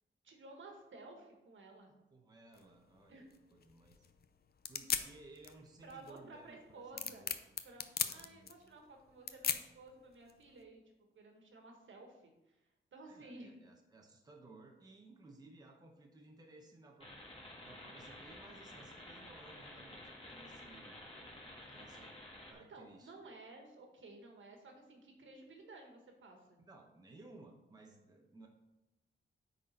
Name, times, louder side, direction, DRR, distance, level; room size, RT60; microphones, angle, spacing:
voice 1, 0.2-1.9 3.1-3.3 5.8-7.2 7.6-10.8 11.1-12.6 12.9-13.5 22.6-26.6, right 2 dB, 70° right, 2 dB, 1.5 m, -54 dB
voice 2, 2.1-3.2 3.5-4.1 4.7-7.3 8.1-8.5 13.0-17.3 17.6-21.0 21.7-22.2 22.5-23.1 26.6-28.5, right 2 dB, 20° right, 1 dB, 0.8 m, -58 dB
sound 1, 2.5-10.6, left 7 dB, 50° left, 0.5 m, -41 dB
sound 2, 17.0-22.5, left 1 dB, 25° left, 1.6 m, -52 dB
9.0 x 4.1 x 4.3 m, 0.98 s
wide cardioid pair, 150°, 21 cm